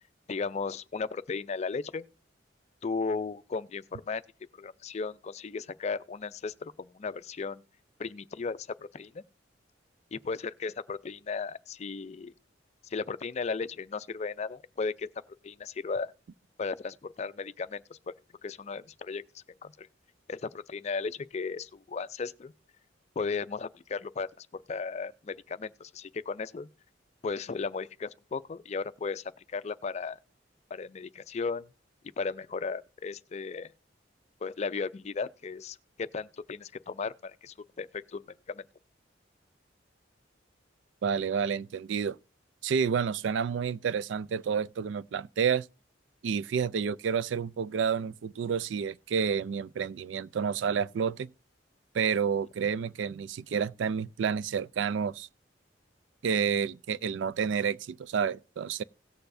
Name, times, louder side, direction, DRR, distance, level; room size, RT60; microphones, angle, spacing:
voice 1, 0.3-2.1 2.8-4.2 4.6-7.6 8.0-9.2 10.1-12.3 12.8-15.1 15.4-16.1 16.6-18.0 18.4-19.9 20.3-22.5 23.2-26.7 27.2-30.2 30.7-31.7 32.2-33.7 34.4-38.2 38.5-38.6, left 4 dB, 35° left, 0.4 m, -35 dB
voice 2, 41.0-42.2 42.6-45.7 46.2-51.3 51.9-55.3 56.2-58.8, right 6 dB, 75° right, 0.3 m, -29 dB
17.5 x 6.8 x 2.6 m
head